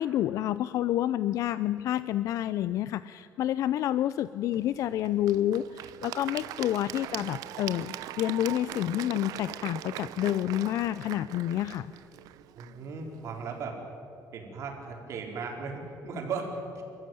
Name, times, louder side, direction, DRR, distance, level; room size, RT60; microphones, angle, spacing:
voice 1, 0.0-11.9, left 12 dB, 60° left, 15 dB, 0.4 m, -29 dB
Applause / Crowd, 4.5-13.6, right 13 dB, 75° right, 0.7 m, -41 dB
voice 2, 12.6-13.8 14.3-16.8, right 4 dB, 50° right, 1 dB, 4.3 m, -37 dB
27.5 x 14.0 x 9.2 m, 2.8 s
cardioid pair, 155°, 6 cm